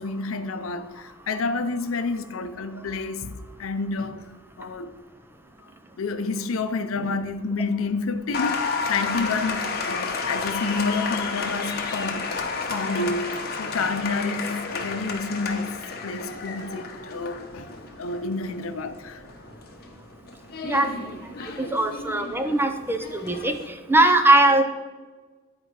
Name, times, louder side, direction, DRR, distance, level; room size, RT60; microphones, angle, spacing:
voice 1, 0.0-4.3 4.6-5.0 6.0-12.3 12.7-17.7 18.0-19.2 21.3-21.6, left 3 dB, 85° left, 0.6 m, -29 dB
Applause, 8.3-23.7, left 4 dB, 50° left, 1.0 m, -32 dB
voice 2, 21.6-23.0 23.2-23.5 23.9-24.6, right 2 dB, 10° right, 0.6 m, -19 dB
10.5 x 4.5 x 4.7 m
head